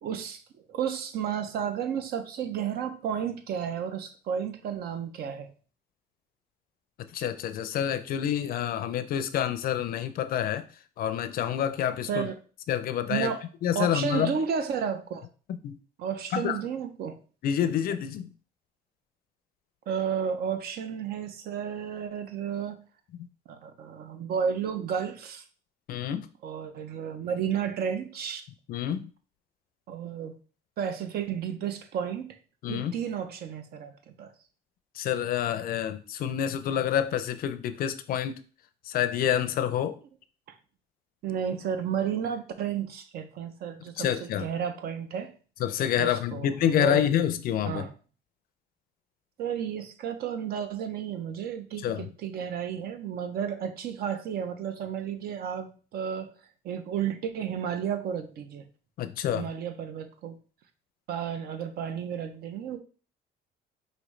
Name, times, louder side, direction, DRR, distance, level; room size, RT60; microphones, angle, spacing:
voice 1, 0.0-0.4 0.7-5.5 12.1-12.4 13.1-15.3 16.0-17.2 19.9-22.8 23.5-25.4 26.4-28.4 29.9-30.3 30.8-32.4 32.7-34.3 41.2-45.3 46.0-47.0 47.6-47.9 49.4-56.3 56.6-58.6 59.3-60.3 61.1-62.8, right 8 dB, 65° right, 9 dB, 0.7 m, -32 dB
voice 2, 7.1-10.6 11.0-12.3 12.7-13.3 13.6-14.3 15.6-15.8 16.3-16.6 17.4-18.3 25.9-26.3 28.7-29.1 32.6-32.9 35.0-38.4 38.9-40.0 44.0-44.4 45.6-47.9 51.8-52.1 59.0-59.5, left 10 dB, 60° left, 12 dB, 0.5 m, -28 dB
4.9 x 2.7 x 3.2 m, 0.38 s
cardioid pair, 110°, 17 cm